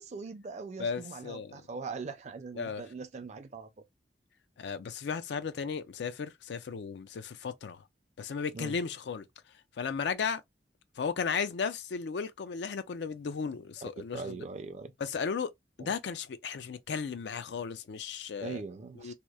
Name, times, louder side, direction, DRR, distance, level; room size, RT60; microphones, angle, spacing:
voice 1, 0.0-3.7 8.5-8.8 14.1-14.9 15.8-15.9 18.4-19.1, right 4 dB, 40° right, 0.4 m, -41 dB
voice 2, 0.8-1.7 2.5-2.8 4.6-7.9 8.2-10.4 10.9-14.4 15.0-15.5 15.8-18.6 19.0-19.1, left 6 dB, 70° left, 0.4 m, -35 dB
2.8 x 2.0 x 2.2 m
head